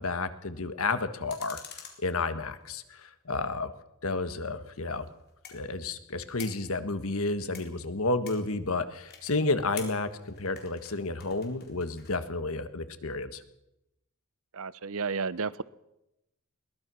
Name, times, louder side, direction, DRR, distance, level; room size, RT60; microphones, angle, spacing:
voice 1, 0.0-1.6 2.0-3.7 4.0-5.0 5.5-13.4, left 3 dB, 65° left, 1.6 m, -31 dB
sound 1, 1.3-2.9 4.3-12.2, left 7 dB, 45° left, 4.2 m, -49 dB
voice 2, 14.5-15.6, right 5 dB, 65° right, 0.8 m, -32 dB
22.5 x 19.0 x 6.3 m
head